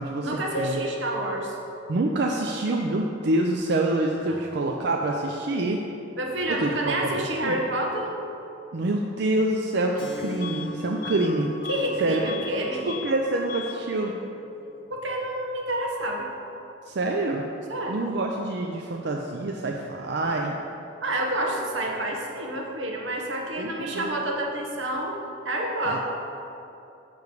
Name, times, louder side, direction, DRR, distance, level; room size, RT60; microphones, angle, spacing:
voice 1, 0.2-1.5 4.3-4.4 6.2-8.1 11.7-13.0 14.9-16.3 17.7-18.0 21.0-25.2 25.4-26.0, right 1 dB, 90° right, 0 dB, 1.1 m, -28 dB
voice 2, 1.9-5.8 6.5-7.6 8.7-11.5 12.0-12.2 12.7-14.1 16.9-17.5 17.9-20.6 23.6-24.1 25.8-26.0, right 2 dB, 65° right, 1 dB, 0.5 m, -26 dB
Keyboard (musical), 10.0-15.1, equal, 25° left, 0.9 m, -41 dB
Bus / Alarm, 10.4-10.7 11.0-12.6 12.8-13.2 13.5-13.8, left 7 dB, 50° left, 0.6 m, -38 dB
9.6 x 3.2 x 6.8 m, 2.8 s
head